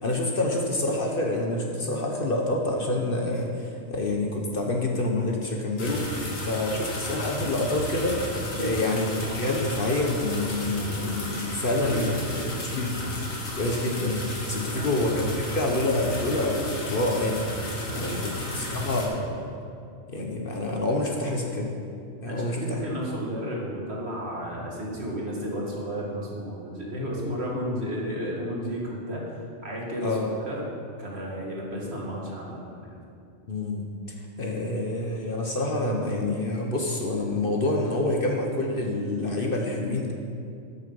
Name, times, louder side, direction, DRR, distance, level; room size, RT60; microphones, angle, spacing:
voice 1, 0.0-12.1 12.6-13.2 13.6-17.5 17.9-19.5 20.1-21.7 22.2-22.8 30.0-30.2 33.5-33.9 34.4-40.1, left 2 dB, 45° left, 1 dB, 1.1 m, -27 dB
sound 1, 5.8-19.1, left 1 dB, 85° left, 2.1 m, -33 dB
voice 2, 8.5-8.9 11.8-12.6 14.7-15.0 17.9-18.3 22.3-30.6 31.0-33.0, equal, 55° right, -3 dB, 2.2 m, -33 dB
13.0 x 6.7 x 5.4 m, 2.5 s
omnidirectional pair, 1.4 m